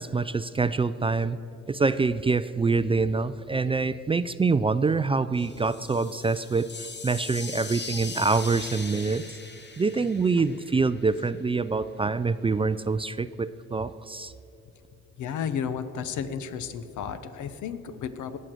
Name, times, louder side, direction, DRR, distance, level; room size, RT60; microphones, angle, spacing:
voice 1, 0.0-1.4 1.7-9.4 9.8-14.3, right 4 dB, 20° right, 13 dB, 0.3 m, -25 dB
sound 1, 5.3-11.2, left 3 dB, 35° left, 1.5 m, -40 dB
voice 2, 15.2-18.4, left 7 dB, 75° left, 12 dB, 0.9 m, -33 dB
17.5 x 6.5 x 7.7 m, 2.8 s
cardioid pair, 90°, 30 cm